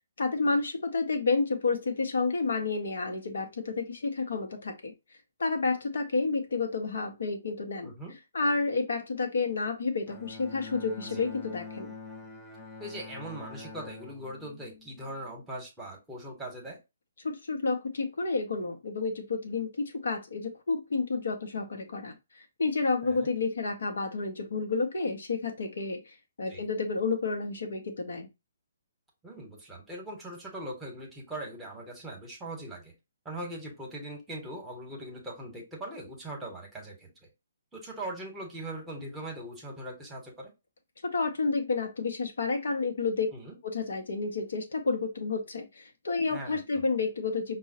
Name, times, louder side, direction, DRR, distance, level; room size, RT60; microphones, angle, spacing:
voice 1, 0.2-4.9 5.4-7.9 8.3-11.9 17.2-28.3 41.0-43.3 43.6-47.6, left 4 dB, 60° left, 4 dB, 0.7 m, -30 dB
Bowed string instrument, 10.1-15.5, left 4 dB, 15° left, 0.5 m, -45 dB
voice 2, 12.8-16.8 23.0-23.3 26.5-26.7 29.2-32.9 33.2-37.1 37.7-40.5 43.3-43.6 46.3-46.8, right 1 dB, 10° right, -1 dB, 1.0 m, -40 dB
5.4 x 2.0 x 2.7 m, 0.24 s
figure-of-eight pair, 130°, 0 cm